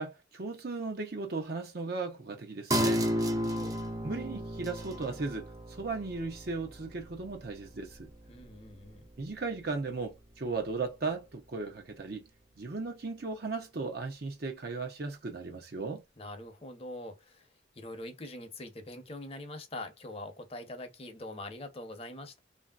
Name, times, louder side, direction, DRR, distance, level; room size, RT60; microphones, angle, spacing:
voice 1, 0.0-3.1 4.0-8.1 9.2-12.3 12.6-16.0, right 3 dB, 55° right, 0.7 m, -36 dB
sound 1, 2.7-9.7 10.1-10.2, equal, 20° right, 0.5 m, -34 dB
voice 2, 3.2-3.8 8.3-9.1 16.2-17.5 17.7-22.4, left 1 dB, 30° left, 0.8 m, -43 dB
3.1 x 2.7 x 2.4 m
head